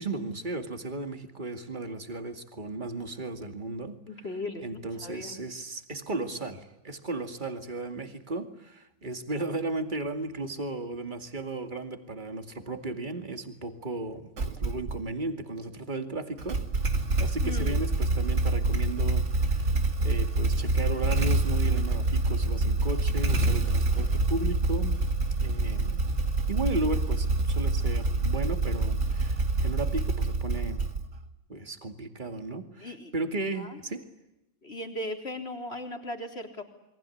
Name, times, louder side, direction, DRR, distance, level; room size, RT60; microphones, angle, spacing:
voice 1, 0.0-4.0 4.6-16.6 17.2-25.0 25.3-26.1 26.5-30.8 31.5-34.1, right 2 dB, 40° right, 7 dB, 2.5 m, -35 dB
voice 2, 4.1-5.4 17.4-17.8 32.8-33.1 33.6-33.8 34.6-36.6, left 1 dB, 55° left, 4 dB, 4.2 m, -37 dB
Motorcycle / Engine starting, 14.4-15.0 16.4-31.3, right 2 dB, 70° right, 2.2 m, -26 dB
28.5 x 23.5 x 8.6 m, 0.90 s
omnidirectional pair, 1.3 m